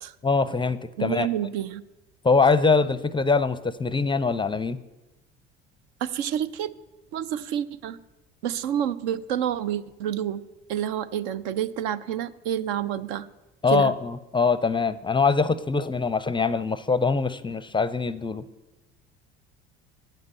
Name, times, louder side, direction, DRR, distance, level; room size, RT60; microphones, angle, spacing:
voice 1, 0.2-1.3 2.2-4.8 13.6-18.4, left 4 dB, 15° left, 16 dB, 0.5 m, -23 dB
voice 2, 1.0-1.8 6.0-6.7 7.1-8.0 8.4-10.4 10.7-13.3 13.7-13.9, right 10 dB, 70° right, 15 dB, 0.6 m, -28 dB
9.2 x 7.4 x 8.1 m, 1.0 s
hypercardioid pair, 65°, 31 cm